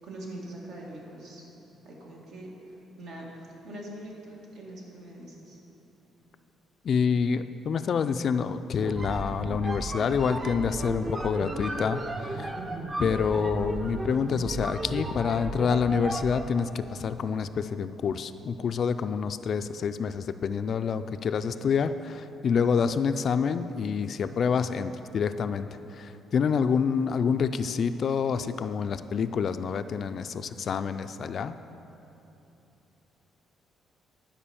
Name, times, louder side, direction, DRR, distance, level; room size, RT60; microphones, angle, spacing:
voice 1, 0.0-1.4 1.8-5.6, right 1 dB, 75° right, -3 dB, 2.0 m, -43 dB
voice 2, 6.8-12.5 13.0-31.6, left 6 dB, 50° left, 10 dB, 0.3 m, -27 dB
sound 1, 8.8-16.6, right 2 dB, 25° right, 0.6 m, -34 dB
11.5 x 5.0 x 7.0 m, 3.0 s
cardioid pair, 120°, 0 cm